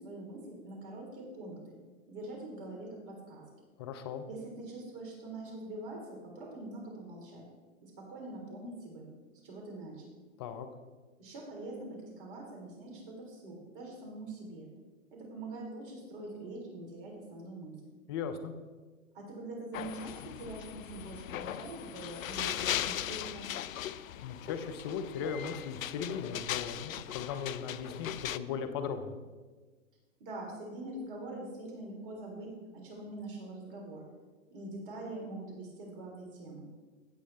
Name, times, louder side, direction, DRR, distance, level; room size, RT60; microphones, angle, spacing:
voice 1, 0.0-1.7 2.1-3.4 4.3-7.4 7.8-9.1 9.4-10.1 11.2-14.7 15.1-17.9 19.1-23.6 30.2-34.0 34.5-36.7, right 2 dB, 40° right, -1 dB, 3.4 m, -44 dB
voice 2, 3.8-4.3 10.4-10.7 18.1-18.5 24.2-29.1, left 6 dB, 20° left, 8 dB, 0.4 m, -38 dB
sound 1, 19.7-28.4, left 11 dB, 75° left, 0.5 m, -38 dB
16.0 x 6.2 x 3.4 m, 1.3 s
hypercardioid pair, 130°, 42 cm